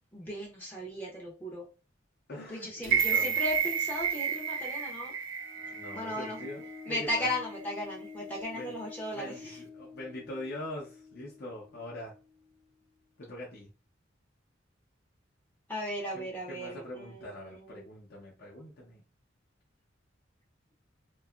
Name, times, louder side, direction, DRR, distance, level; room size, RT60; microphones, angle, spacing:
voice 1, 0.1-1.7 2.5-5.1 5.9-6.4 6.9-9.6 15.7-17.9, left 1 dB, 10° left, -4 dB, 0.5 m, -36 dB
voice 2, 2.3-3.3 5.7-7.3 8.5-8.7 9.1-12.1 13.2-13.7 16.1-19.0, left 1 dB, 55° left, -5 dB, 0.7 m, -43 dB
sound 1, 2.8-7.0 7.4-7.5, right 7 dB, 75° right, 0.5 m, -31 dB
sound 2, 5.3-12.8, left 5 dB, 30° left, 1.1 m, -48 dB
2.7 x 2.3 x 2.3 m, 0.33 s
head